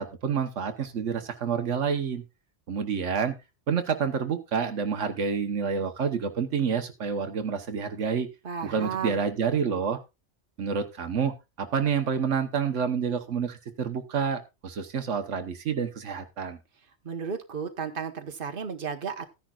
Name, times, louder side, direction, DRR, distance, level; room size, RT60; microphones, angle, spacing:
voice 1, 0.0-2.2 2.7-3.3 3.7-8.3 8.6-10.0 10.6-16.6, right 6 dB, 85° right, 7 dB, 1.4 m, -28 dB
voice 2, 8.4-9.2 17.0-19.2, right 6 dB, 50° right, 6 dB, 1.4 m, -33 dB
15.0 x 10.0 x 2.4 m, 0.26 s
omnidirectional pair, 1.2 m